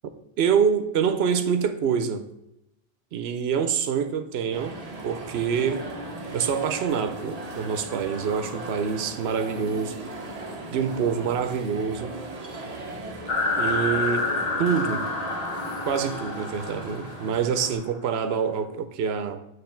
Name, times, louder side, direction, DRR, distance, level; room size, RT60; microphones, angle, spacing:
voice 1, 0.4-2.3 3.1-5.9 6.3-9.9 10.7-12.2 13.6-14.3 14.6-15.0 15.8-19.4, right 7 dB, 85° right, 0.9 m, -26 dB
sound 1, 4.5-17.7, right 2 dB, 40° right, 1.0 m, -37 dB
sound 2, 13.3-17.6, left 3 dB, 70° left, 1.1 m, -28 dB
7.9 x 3.3 x 4.3 m
omnidirectional pair, 1.0 m